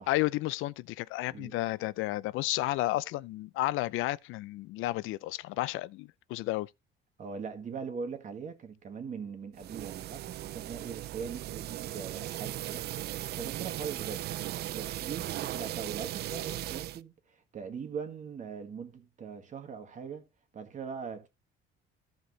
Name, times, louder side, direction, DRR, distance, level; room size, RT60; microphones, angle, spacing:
voice 1, 0.1-6.7, left 17 dB, 80° left, 0.5 m, -32 dB
voice 2, 7.2-12.9 13.2-14.3 14.7-20.3 20.5-21.3, right 6 dB, 40° right, 1.9 m, -41 dB
sound 1, 9.5-17.0, right 14 dB, 55° right, 0.4 m, -37 dB
14.5 x 5.2 x 3.2 m
cardioid pair, 140°, 20 cm